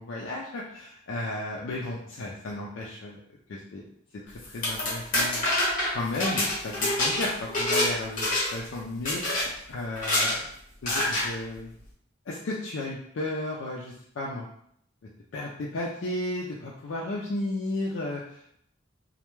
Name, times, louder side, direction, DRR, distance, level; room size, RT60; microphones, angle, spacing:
voice 1, 0.0-3.2 3.5-3.8 4.2-5.5 5.9-9.2 9.7-10.4 10.8-11.7 12.3-14.4 15.3-18.6, left 2 dB, 75° left, -4 dB, 0.4 m, -34 dB
sound 1, 4.4-7.9 8.2-8.7 9.1-9.5 10.0-10.4 10.9-11.3, left 1 dB, 45° left, 0.9 m, -26 dB
2.2 x 2.1 x 3.0 m, 0.69 s
head